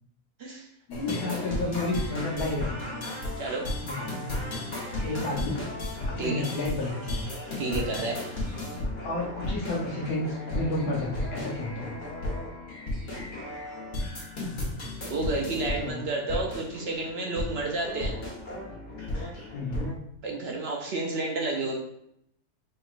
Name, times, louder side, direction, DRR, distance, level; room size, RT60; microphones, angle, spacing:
voice 1, 0.9-3.1 3.8-4.1 5.0-5.6 6.1-7.3 9.0-12.0 15.6-16.1 19.5-19.9, left 2 dB, 80° left, -4 dB, 1.3 m, -31 dB
sound 1, 0.9-19.9, left 1 dB, 35° left, 1.0 m, -34 dB
voice 2, 7.6-8.2 15.1-18.2 20.2-21.7, right 2 dB, 65° right, 0 dB, 0.6 m, -30 dB
4.4 x 2.9 x 2.4 m, 0.74 s
omnidirectional pair, 1.6 m